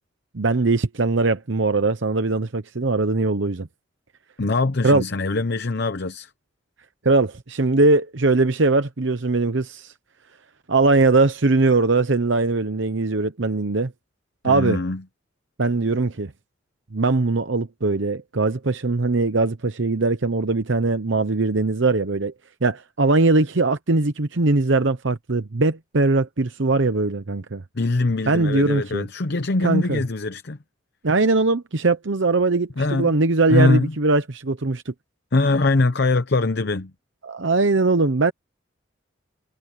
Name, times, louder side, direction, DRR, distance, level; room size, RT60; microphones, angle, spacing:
voice 1, 0.3-3.7 4.8-5.0 7.0-9.9 10.7-13.9 14.4-14.8 15.6-16.3 16.9-22.3 22.6-27.6 28.3-29.1 29.6-30.0 31.0-34.9 37.2-38.3, right 3 dB, 65° right, 0.9 m, -21 dB
voice 2, 4.4-6.3 14.4-15.0 27.7-30.6 32.8-33.2 33.5-33.9 35.3-36.9, left 3 dB, 55° left, 0.8 m, -22 dB
head